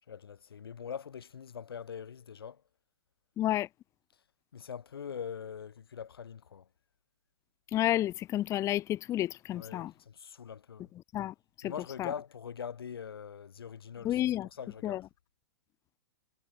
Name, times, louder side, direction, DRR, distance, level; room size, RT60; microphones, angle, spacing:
voice 1, 0.1-2.6 4.5-6.7 9.5-10.9 11.6-15.0, left 7 dB, 85° left, 1.3 m, -43 dB
voice 2, 3.4-3.7 7.7-9.9 11.1-11.7 12.0-12.1 14.0-14.5 14.8-15.0, left 13 dB, 25° left, 0.5 m, -30 dB
hypercardioid pair, 120°, 12 cm